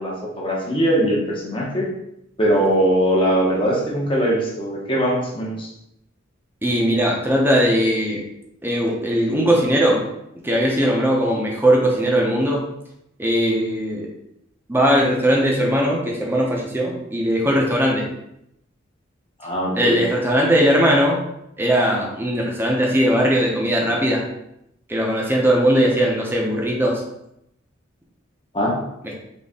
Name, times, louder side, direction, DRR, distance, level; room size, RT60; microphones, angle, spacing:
voice 1, 0.0-1.9 2.4-5.7 19.4-20.0 28.5-28.8, right 1 dB, 25° left, -3 dB, 1.0 m, -21 dB
voice 2, 6.6-8.2 8.6-10.0 10.4-12.6 13.2-14.1 14.7-18.1 19.8-21.2 21.6-24.2 24.9-27.0, equal, 10° right, -2 dB, 0.8 m, -19 dB
4.1 x 3.0 x 3.6 m, 0.80 s
head